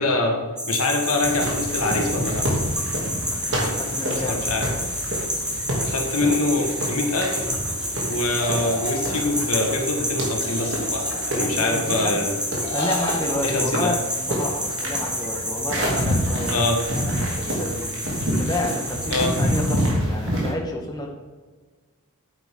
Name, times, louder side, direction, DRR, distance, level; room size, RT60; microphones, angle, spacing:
voice 1, 0.0-2.5 3.6-3.9 4.3-4.7 5.8-7.5 8.1-11.0 11.3-12.4 13.4-13.9 16.5-16.8 19.1-19.3, left 2 dB, 75° left, 2 dB, 1.7 m, -24 dB
sound 1, 0.6-19.9, equal, 5° right, 1.8 m, -29 dB
sound 2, 1.2-20.5, equal, 55° right, 2.7 m, -28 dB
voice 2, 3.5-4.4 8.0-8.3 11.3-12.2 12.7-16.6 16.9-17.9 18.4-21.1, left 1 dB, 20° left, 0 dB, 1.2 m, -30 dB
sound 3, 8.4-9.7 10.4-11.6 12.6-13.4, left 1 dB, 50° left, 2.6 m, -32 dB
9.7 x 8.7 x 3.7 m, 1.4 s
head